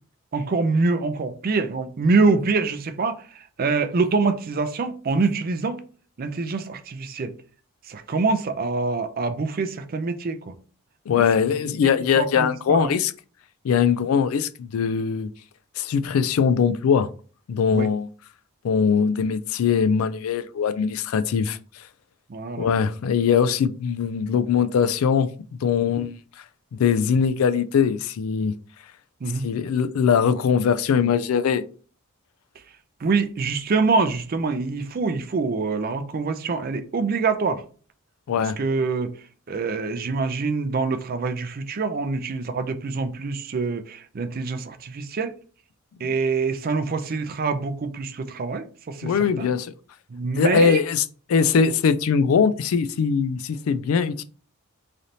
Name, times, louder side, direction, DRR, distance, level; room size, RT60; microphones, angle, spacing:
voice 1, 0.3-5.8 6.2-7.3 7.9-10.5 11.1-11.3 11.5-11.6 12.2-12.9 17.7-17.9 22.3-22.7 25.8-26.0 29.2-29.5 33.0-37.6 38.3-39.1 39.5-45.3 46.0-49.5 50.1-50.8, right 4 dB, 45° right, 0.4 m, -25 dB
voice 2, 11.1-13.1 13.6-15.3 15.8-17.1 17.5-18.1 18.6-21.6 22.5-26.2 26.7-28.5 29.4-31.6 38.3-38.6 46.0-46.1 49.0-49.7 50.4-54.2, left 6 dB, 70° left, 0.3 m, -21 dB
3.2 x 2.7 x 3.9 m
head